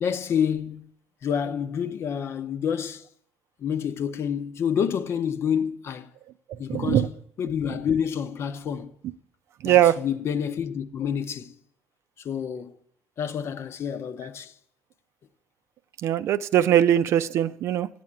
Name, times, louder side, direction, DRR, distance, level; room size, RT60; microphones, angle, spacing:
voice 1, 0.0-0.9 1.2-3.1 3.6-6.1 6.6-9.0 9.6-11.6 12.2-12.7 13.2-14.5, left 8 dB, 55° left, 0.8 m, -28 dB
voice 2, 6.7-7.1 9.6-10.0 16.0-17.9, right 11 dB, 60° right, 0.5 m, -20 dB
9.1 x 7.6 x 8.6 m
hypercardioid pair, 55°, 5 cm